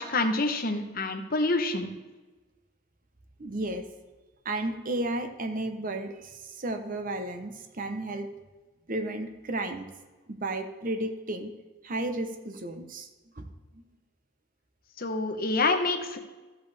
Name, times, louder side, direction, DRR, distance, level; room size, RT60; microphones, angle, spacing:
voice 1, 0.0-1.9 15.0-16.2, left 2 dB, 45° left, 5 dB, 1.0 m, -27 dB
voice 2, 3.4-3.8 4.4-8.3 8.9-9.9 10.3-11.5 11.8-13.1 13.4-13.5 13.7-13.8, right 2 dB, 45° right, 6 dB, 1.0 m, -33 dB
13.5 x 7.9 x 3.5 m, 1.2 s
head